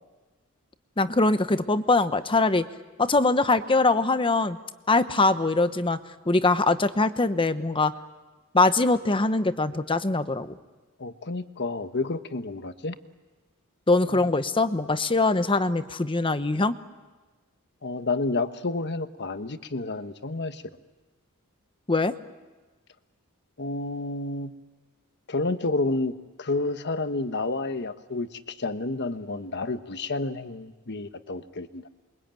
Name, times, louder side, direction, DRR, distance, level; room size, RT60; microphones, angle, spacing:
voice 1, 1.0-2.6 3.0-4.6 4.9-6.0 6.3-7.9 8.5-10.5 13.9-16.7 21.9-22.1, left 3 dB, 25° left, 11 dB, 0.9 m, -22 dB
voice 2, 11.0-12.9 14.1-14.2 17.8-20.6 23.6-24.5 25.3-26.1 26.4-31.9, left 3 dB, 50° left, 10 dB, 1.2 m, -30 dB
28.5 x 23.5 x 9.0 m, 1.2 s
head